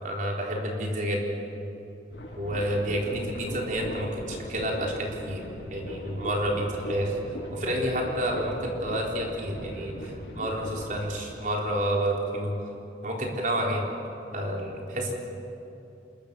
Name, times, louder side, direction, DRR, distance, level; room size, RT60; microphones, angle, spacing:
voice 1, 0.0-1.2 2.4-5.4 5.7-7.1 7.5-12.5 13.0-13.9 14.3-15.1, equal, 45° right, -1 dB, 3.9 m, -29 dB
sound 1, 2.1-11.2, equal, 80° left, 6.9 m, -39 dB
26.5 x 21.5 x 6.9 m, 2.9 s
head